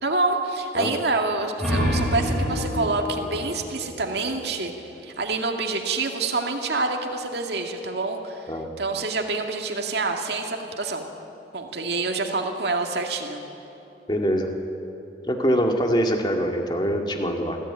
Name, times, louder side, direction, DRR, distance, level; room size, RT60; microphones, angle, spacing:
voice 1, 0.0-4.7 5.0-8.5 8.8-11.1 11.5-13.4, right 3 dB, 70° right, 2 dB, 2.1 m, -27 dB
sound 1, 1.3-4.7, equal, ahead, 5.7 m, -28 dB
voice 2, 14.1-14.5 15.3-17.6, equal, 25° left, 2 dB, 2.2 m, -23 dB
25.5 x 15.5 x 9.0 m, 2.9 s
head